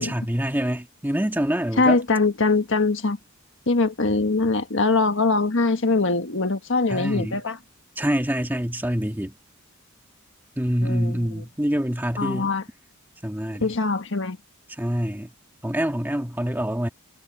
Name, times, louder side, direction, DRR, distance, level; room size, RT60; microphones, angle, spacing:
voice 1, 0.0-2.0 6.9-7.4 8.0-9.3 10.6-12.5 13.2-13.7 14.8-15.3 15.6-16.9, equal, 10° right, 1.6 m, -26 dB
voice 2, 1.8-3.2 3.7-7.6 10.8-11.4 12.2-12.6 13.6-14.4, left 3 dB, 60° left, 1.5 m, -22 dB
head